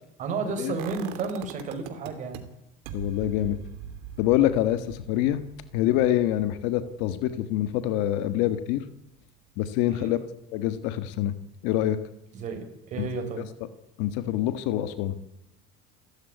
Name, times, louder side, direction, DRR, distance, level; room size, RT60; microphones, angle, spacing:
voice 1, 0.2-2.4 9.9-10.1 12.3-13.4, right 4 dB, 40° right, 4 dB, 5.9 m, -32 dB
Exponential impact, 0.8-2.4 2.9-8.7 9.0-9.1, right 10 dB, 80° right, 2.9 m, -42 dB
voice 2, 2.9-3.6 4.2-5.4 5.7-8.8 9.6-10.2 10.5-11.3 11.6-12.0 13.0-13.1 14.0-15.2, left 13 dB, 70° left, 12 dB, 1.5 m, -25 dB
28.0 x 14.5 x 9.4 m, 0.87 s
cardioid pair, 140°, 19 cm